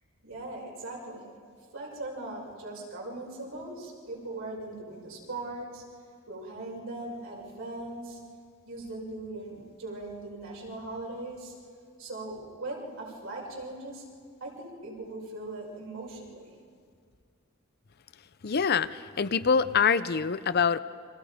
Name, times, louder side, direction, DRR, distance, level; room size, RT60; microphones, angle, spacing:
voice 1, 0.2-1.2 1.7-5.8 6.3-8.2 8.6-11.5 12.0-14.0 14.4-16.6, right 2 dB, 75° right, -3 dB, 5.9 m, -39 dB
voice 2, 18.4-20.8, left 6 dB, 50° left, 14 dB, 0.6 m, -25 dB
30.0 x 24.5 x 5.1 m, 2.1 s
head